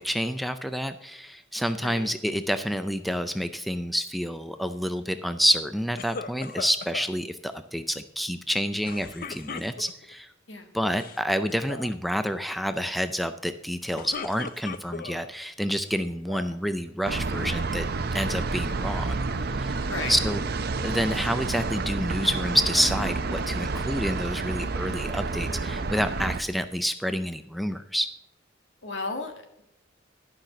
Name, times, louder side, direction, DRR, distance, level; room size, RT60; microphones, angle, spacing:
voice 1, 0.0-10.3 10.7-17.9 18.1-19.2 19.6-19.8 20.1-20.4 20.8-28.1, equal, ahead, 10 dB, 0.4 m, -28 dB
voice 2, 1.8-2.1 10.5-10.7 19.9-20.1 28.8-29.6, left 3 dB, 75° left, 5 dB, 1.7 m, -34 dB
sound 1, 6.0-7.1 8.8-10.1 10.8-11.2 11.5-11.9 13.7-15.2 15.8-16.6, left 5 dB, 50° left, 0.6 m, -38 dB
sound 2, 17.1-26.4, right 3 dB, 55° right, 0.7 m, -29 dB
12.0 x 5.8 x 6.6 m, 0.79 s
head